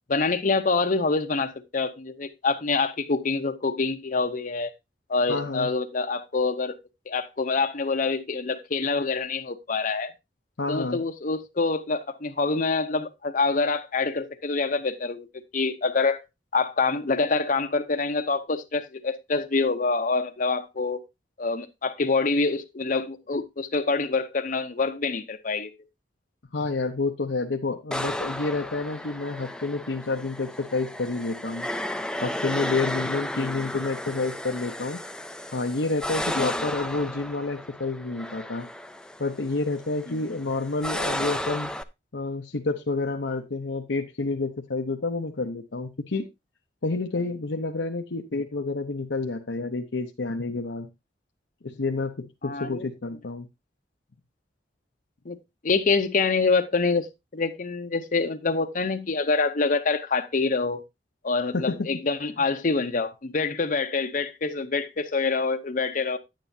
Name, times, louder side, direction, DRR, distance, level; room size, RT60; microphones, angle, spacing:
voice 1, 0.1-4.7 5.1-6.7 7.1-10.1 10.7-15.3 15.5-16.2 16.5-21.0 21.4-25.7 33.4-33.5 36.4-36.5 40.1-40.2 52.4-52.8 55.3-55.4 55.6-60.8 61.2-66.2, left 4 dB, 50° left, 0.7 m, -26 dB
voice 2, 5.3-5.7 10.6-11.0 26.5-31.7 32.2-35.0 35.5-38.7 39.2-41.7 42.1-46.2 46.8-50.9 51.6-53.5 61.5-62.0 62.4-62.5, left 3 dB, 85° left, 0.8 m, -29 dB
sound 1, 27.9-41.8, left 1 dB, 5° left, 0.4 m, -33 dB
10.0 x 9.1 x 2.7 m
head